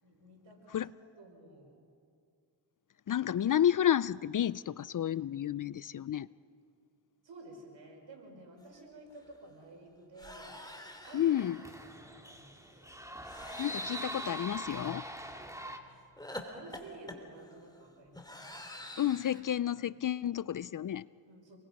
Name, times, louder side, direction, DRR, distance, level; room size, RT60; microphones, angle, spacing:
voice 1, 0.0-1.7 7.2-10.6 11.0-11.5 12.0-13.0 15.3-15.5 16.5-18.9 21.3-21.6, right 2 dB, 70° right, 0 dB, 5.6 m, -52 dB
voice 2, 3.1-6.3 11.1-11.6 13.6-15.0 19.0-21.1, left 10 dB, 45° left, 19 dB, 0.4 m, -31 dB
sound 1, 8.7-8.8 9.1-9.3 10.2-11.8 13.2-15.4 16.2-19.4, left 1 dB, 10° left, 3.0 m, -48 dB
sound 2, 10.6-15.8, right 1 dB, 5° right, 2.1 m, -43 dB
28.0 x 21.5 x 5.3 m, 2.4 s
cardioid pair, 60°, 45 cm